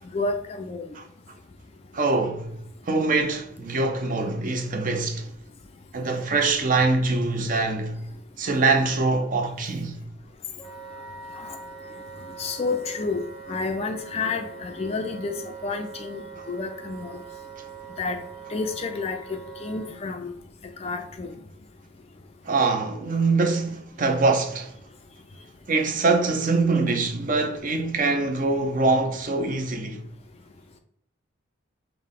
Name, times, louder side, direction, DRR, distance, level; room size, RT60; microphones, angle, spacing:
voice 1, 0.1-0.8 11.4-11.6 12.4-13.2 13.5-15.4 15.6-16.2 16.5-17.1 18.0-18.2 18.5-20.3 20.8-21.3, left 3 dB, 30° left, 0.3 m, -30 dB
voice 2, 1.9-2.6 2.9-5.3 5.9-8.1 8.4-10.0 22.5-24.7 25.7-30.0, right 3 dB, 40° right, 0.5 m, -24 dB
Wind instrument woodwind instrument, 10.6-19.9, right 5 dB, 5° left, 0.8 m, -42 dB
5.4 x 2.1 x 3.6 m
head